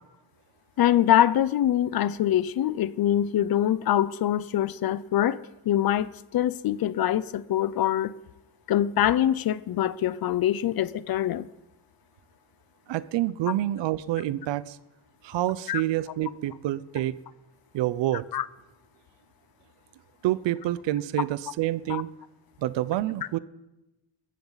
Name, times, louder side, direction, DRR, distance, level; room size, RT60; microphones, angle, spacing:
voice 1, 0.8-5.4 5.7-8.1 8.7-11.5 15.7-15.8 18.3-18.4 21.9-22.0, left 11 dB, 55° left, 0.6 m, -24 dB
voice 2, 12.9-14.8 15.2-17.2 17.7-18.3 20.2-22.1 22.6-23.4, right 14 dB, 75° right, 0.8 m, -27 dB
19.5 x 14.5 x 4.1 m
cardioid pair, 110°, 44 cm